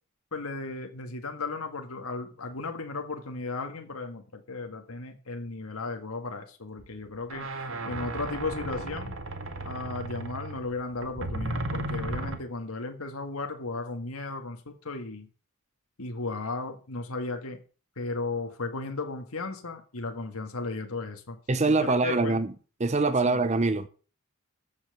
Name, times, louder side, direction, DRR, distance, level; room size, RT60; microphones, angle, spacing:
voice 1, 0.3-9.1 9.6-15.3 16.0-17.6 18.0-21.4 21.6-22.4 23.2-23.4, left 3 dB, 85° left, 1.7 m, -35 dB
sound 1, 6.8-6.9 7.3-12.4, right 2 dB, 70° right, 1.8 m, -35 dB
voice 2, 21.5-22.5 22.8-23.9, right 3 dB, 30° right, 0.7 m, -24 dB
14.0 x 5.8 x 6.8 m
head